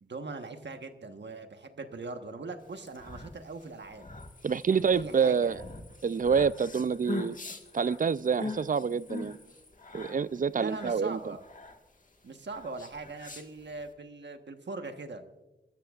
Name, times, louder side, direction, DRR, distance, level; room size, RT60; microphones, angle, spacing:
voice 1, 0.0-4.1 4.6-5.7 10.5-11.4 12.2-15.2, right 3 dB, 70° right, 1.2 m, -41 dB
sound 1, 2.7-13.9, left 2 dB, 45° left, 1.6 m, -42 dB
grasshopper song, 4.2-9.7, left 3 dB, 70° left, 3.4 m, -60 dB
voice 2, 4.4-5.6 6.0-7.4 7.7-9.4 9.9-11.2, right 6 dB, 45° right, 0.4 m, -27 dB
29.5 x 13.5 x 2.4 m
wide cardioid pair, 65°, 19 cm